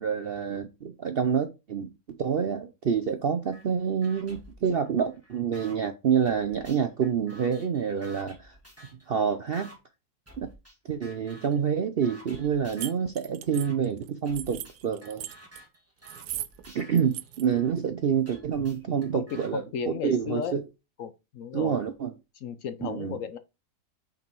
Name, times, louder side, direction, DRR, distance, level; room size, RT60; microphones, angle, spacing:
voice 1, 0.0-9.7 10.4-10.5 10.9-15.2 16.7-20.6 21.5-22.1 22.8-23.2, right 7 dB, 60° right, 0.6 m, -28 dB
sound 1, 3.5-3.7 4.0-5.8 6.3-9.1 9.5-9.8 10.3-10.8 11.0-11.6 12.0-13.0 13.5-13.8 14.3-17.7 18.3-19.5, right 1 dB, 10° right, 2.4 m, -51 dB
sound 2, 12.7-15.6 16.0-16.7 16.9-17.5, right 13 dB, 85° right, 1.1 m, -38 dB
voice 2, 19.1-20.6 21.0-21.8 22.4-23.4, left 7 dB, 65° left, 1.0 m, -35 dB
5.9 x 5.2 x 4.5 m
omnidirectional pair, 1.6 m